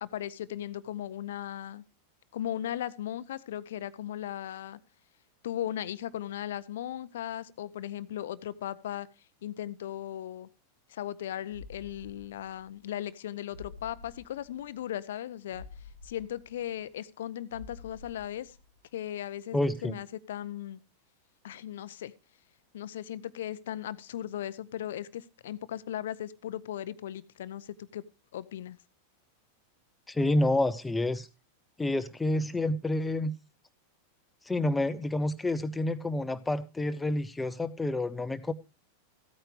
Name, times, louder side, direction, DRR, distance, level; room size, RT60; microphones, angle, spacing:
voice 1, 0.0-1.8 2.3-4.8 5.4-9.1 9.4-10.5 10.9-15.6 16.0-18.5 18.9-20.8 21.4-22.1 22.7-28.0 28.3-28.8, left 11 dB, 60° left, 18 dB, 0.6 m, -37 dB
sound 1, 11.5-12.9 13.2-13.3 13.5-14.9 15.2-15.3 15.5-17.2 17.5-18.9 19.2-19.3, left 4 dB, 85° right, 3.3 m, -49 dB
voice 2, 19.5-19.9 30.1-31.3 31.8-33.3 34.5-38.5, left 2 dB, 10° left, 13 dB, 0.7 m, -29 dB
15.0 x 8.9 x 3.3 m, 0.31 s
figure-of-eight pair, 90°, 0 cm